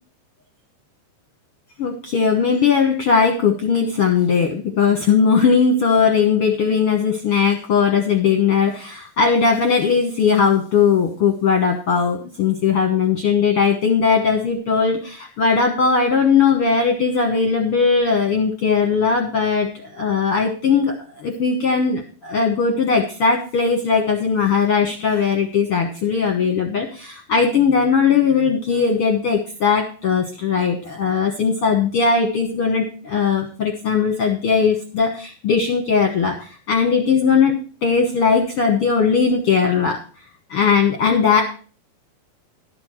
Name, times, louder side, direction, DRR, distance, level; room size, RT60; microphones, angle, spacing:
voice 1, 1.8-37.5 37.8-40.0 40.5-41.4, left 5 dB, 65° left, 2 dB, 1.4 m, -19 dB
12.0 x 6.2 x 6.2 m, 0.40 s
omnidirectional pair, 4.3 m